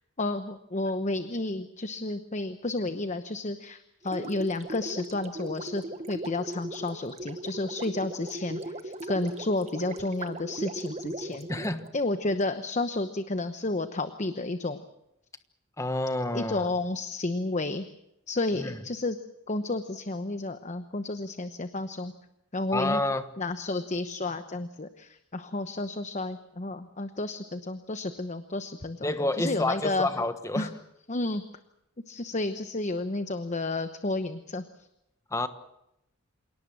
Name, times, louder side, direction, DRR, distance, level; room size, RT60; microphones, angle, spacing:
voice 1, 0.2-11.5 11.9-14.8 16.3-17.9 18.3-19.2 19.5-22.1 22.5-23.0 23.4-29.1 29.4-30.1 30.6-30.7 31.1-31.4 32.1-34.6, left 2 dB, 35° left, 1.0 m, -31 dB
Gurgling, 4.0-12.4, right 2 dB, 30° right, 1.2 m, -39 dB
voice 2, 11.5-11.9 15.8-16.7 18.5-18.8 22.7-23.3 29.0-30.7 35.3-35.5, left 2 dB, 15° left, 1.3 m, -29 dB
27.5 x 18.0 x 7.6 m
head